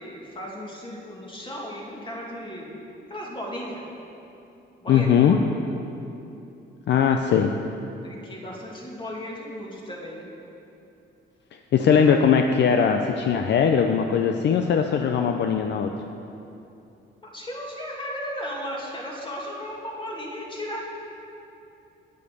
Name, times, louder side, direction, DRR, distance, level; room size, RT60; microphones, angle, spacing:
voice 1, 0.0-2.8 3.1-3.9 4.8-5.6 8.0-10.3 17.3-20.8, equal, 25° left, -3 dB, 2.5 m, -35 dB
voice 2, 4.9-5.4 6.9-7.6 11.7-15.9, left 7 dB, 60° left, 5 dB, 0.6 m, -20 dB
9.4 x 8.2 x 6.7 m, 2.8 s
cardioid pair, 90°, 20 cm